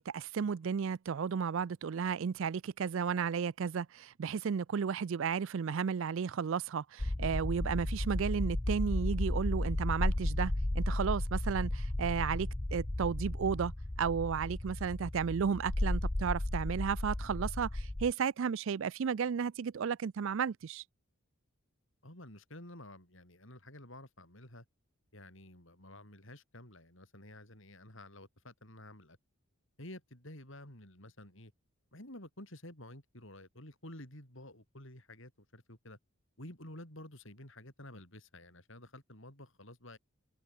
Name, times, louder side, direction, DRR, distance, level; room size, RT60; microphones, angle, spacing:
voice 1, 0.0-13.7 14.0-20.8, right 6 dB, 65° right, 0.4 m, -33 dB
sound 1, 7.0-18.1, left 1 dB, 15° left, 0.4 m, -34 dB
voice 2, 22.0-24.6 25.1-29.2 29.8-31.5 31.9-36.0 36.4-40.0, left 1 dB, 60° left, 6.8 m, -51 dB
head